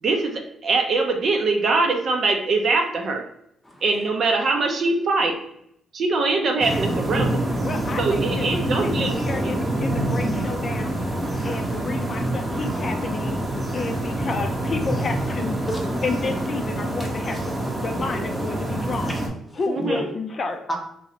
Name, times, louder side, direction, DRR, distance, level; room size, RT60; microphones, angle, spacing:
voice 1, 0.0-3.2 3.8-5.4 5.9-7.4 8.0-9.5 19.7-20.1, right 3 dB, 60° right, 3 dB, 0.6 m, -23 dB
sound 1, 6.6-19.3, right 1 dB, 20° right, 0.8 m, -26 dB
voice 2, 7.6-8.4 8.8-11.0 11.4-13.4 13.7-15.6 16.0-19.2 19.5-20.6, left 4 dB, 40° left, 4 dB, 0.4 m, -30 dB
voice 3, 10.7-13.0 15.6-15.9 19.0-19.2 19.8-20.0 20.7-20.8, equal, 10° left, 1 dB, 0.8 m, -36 dB
3.0 x 2.9 x 2.8 m, 0.72 s
cardioid pair, 90°, 0 cm